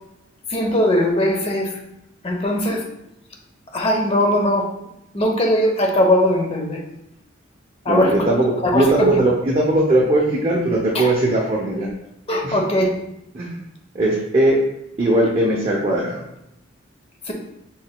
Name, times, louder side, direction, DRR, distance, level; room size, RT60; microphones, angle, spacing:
voice 1, 0.5-1.8 2.2-2.8 3.7-4.7 5.1-6.8 7.8-8.1 8.6-9.2 10.9-11.1 12.3-12.9 17.3-17.4, left 1 dB, 30° left, 1 dB, 0.8 m, -19 dB
voice 2, 7.9-11.9 12.4-12.6 13.3-13.6 13.9-14.6 15.0-16.2, right 1 dB, 30° right, -4 dB, 0.6 m, -19 dB
6.1 x 3.8 x 2.2 m, 0.83 s
head